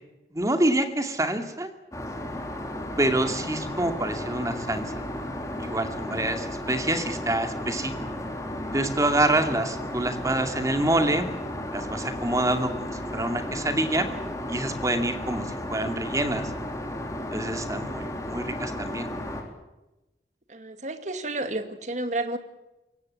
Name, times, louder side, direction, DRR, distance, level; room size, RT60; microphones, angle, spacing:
voice 1, 0.3-1.7 3.0-4.9 5.6-7.9 8.7-11.3 11.7-14.1 14.5-16.5 17.3-19.1, right 1 dB, 20° right, 7 dB, 2.3 m, -26 dB
Aircraft, 1.9-19.4, left 1 dB, 20° left, 3.4 m, -34 dB
voice 2, 20.5-22.4, right 2 dB, 40° right, 9 dB, 2.1 m, -31 dB
23.5 x 18.0 x 9.6 m, 0.99 s
head